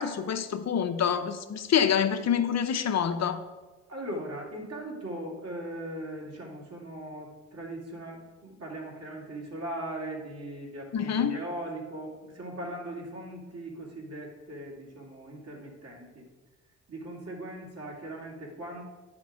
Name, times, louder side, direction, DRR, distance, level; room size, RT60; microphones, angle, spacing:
voice 1, 0.0-3.5 10.9-11.4, left 8 dB, 60° left, 0.7 m, -26 dB
voice 2, 3.9-16.3 16.9-18.8, right 1 dB, 55° right, 2.6 m, -39 dB
9.5 x 5.2 x 4.8 m
cardioid pair, 85°, 30 cm